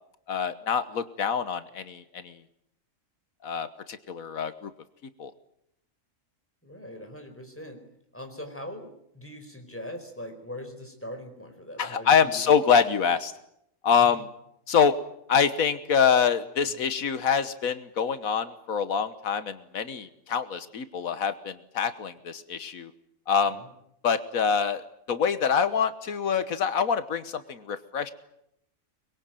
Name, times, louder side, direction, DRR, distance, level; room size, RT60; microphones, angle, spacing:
voice 1, 0.3-2.4 3.4-4.7 5.2-5.3 11.8-13.3 13.8-14.3 14.7-15.0 15.3-22.9 23.3-23.6 24.0-28.1, left 7 dB, 85° left, 11 dB, 1.6 m, -25 dB
voice 2, 6.6-7.8 8.1-12.5 14.0-14.2 23.5-23.7, left 1 dB, 10° left, 5 dB, 4.6 m, -41 dB
24.5 x 22.0 x 9.1 m, 0.77 s
omnidirectional pair, 1.4 m